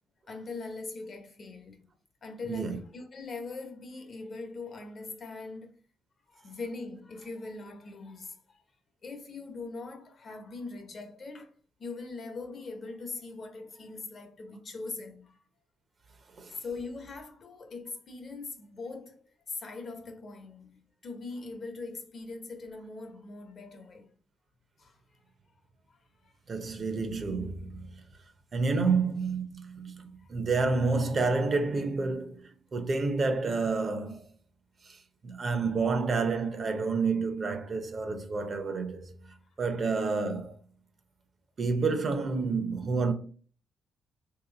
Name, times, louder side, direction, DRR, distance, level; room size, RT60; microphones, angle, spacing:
voice 1, 0.3-1.9 2.2-5.8 6.3-8.6 9.0-11.5 11.8-15.4 16.5-24.1 24.8-25.0 25.9-26.3 28.8-28.9 30.2-30.3, left 3 dB, 50° left, 0.9 m, -41 dB
voice 2, 26.5-27.9 28.5-30.0 30.3-34.2 34.8-35.0 35.2-39.2 39.6-40.6 41.6-43.1, right 4 dB, 45° right, 0.7 m, -29 dB
3.2 x 2.9 x 4.0 m
cardioid pair, 90°, 0 cm